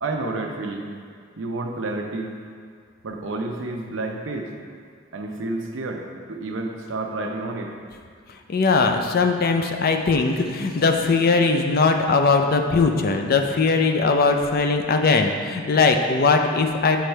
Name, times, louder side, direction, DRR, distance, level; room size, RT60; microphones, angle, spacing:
voice 1, 0.0-0.9 1.4-2.3 3.0-4.5 5.1-6.0 6.3-7.7, right 2 dB, 70° right, 2 dB, 0.6 m, -29 dB
voice 2, 8.5-17.0, left 4 dB, 50° left, 5 dB, 0.5 m, -20 dB
8.2 x 3.2 x 4.5 m, 2.1 s
head